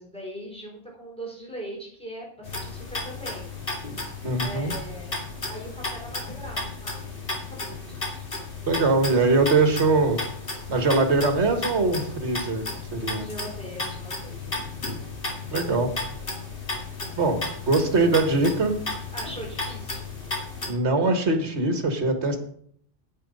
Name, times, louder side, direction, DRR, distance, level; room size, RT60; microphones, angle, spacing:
voice 1, 0.0-3.5 4.4-5.1 5.5-7.1 7.5-8.2 13.2-14.7 19.1-20.0, equal, 5° left, -3 dB, 4.2 m, -40 dB
sound 1, 2.4-20.7, left 3 dB, 50° left, 2.3 m, -34 dB
voice 2, 4.2-4.7 8.7-10.2 10.7-12.6 12.9-13.3 15.5-15.9 17.2-17.4 17.7-18.8 20.7-22.4, right 3 dB, 70° right, 5 dB, 1.8 m, -22 dB
9.0 x 8.9 x 5.3 m, 0.63 s
omnidirectional pair, 1.2 m